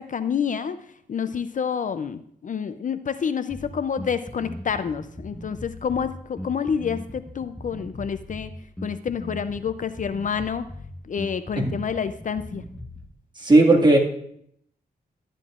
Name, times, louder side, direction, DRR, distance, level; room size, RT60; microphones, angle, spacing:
voice 1, 0.0-8.5 8.8-10.7 11.0-12.6, left 7 dB, 50° left, 11 dB, 0.4 m, -28 dB
Bass guitar, 3.5-13.1, left 1 dB, 5° left, 1.0 m, -39 dB
voice 2, 13.4-14.0, right 2 dB, 25° right, -1 dB, 1.8 m, -16 dB
12.5 x 9.8 x 2.4 m, 0.69 s
cardioid pair, 85°, 18 cm